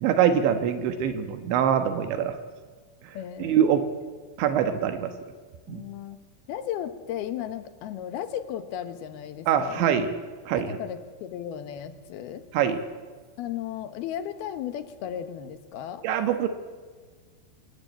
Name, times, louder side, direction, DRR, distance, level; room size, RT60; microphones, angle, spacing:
voice 1, 0.0-2.4 3.4-3.9 4.4-5.1 5.7-5.8 9.5-10.1 10.5-10.8 12.5-12.8 16.0-16.5, right 8 dB, 75° right, 8 dB, 3.5 m, -24 dB
voice 2, 3.1-3.6 5.7-6.2 6.5-10.0 10.6-12.4 13.4-16.1, left 10 dB, 65° left, 10 dB, 2.9 m, -35 dB
26.5 x 21.0 x 8.7 m, 1.5 s
omnidirectional pair, 5.4 m